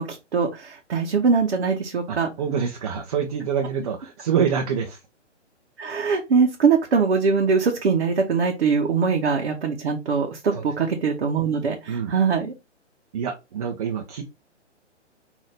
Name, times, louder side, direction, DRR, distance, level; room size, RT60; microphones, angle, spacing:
voice 1, 0.0-2.3 5.8-12.5, right 5 dB, 55° right, 2 dB, 1.0 m, -22 dB
voice 2, 2.1-5.0 10.5-10.6 11.9-12.1 13.1-14.2, right 7 dB, 30° right, 3 dB, 0.7 m, -26 dB
5.5 x 2.7 x 3.3 m, 0.24 s
figure-of-eight pair, 135°, 36 cm